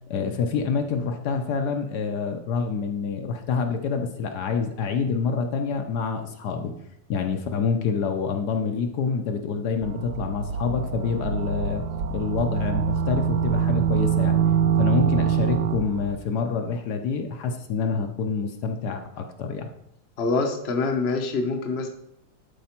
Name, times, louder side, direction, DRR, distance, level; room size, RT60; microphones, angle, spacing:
voice 1, 0.1-6.7 7.1-11.8 12.1-14.4 14.8-19.7, left 5 dB, 65° left, 5 dB, 1.2 m, -27 dB
sound 1, 9.8-16.1, right 7 dB, 65° right, 0.8 m, -24 dB
voice 2, 20.2-21.9, left 3 dB, 45° left, 2 dB, 0.9 m, -25 dB
11.5 x 4.7 x 4.4 m, 0.79 s
omnidirectional pair, 2.0 m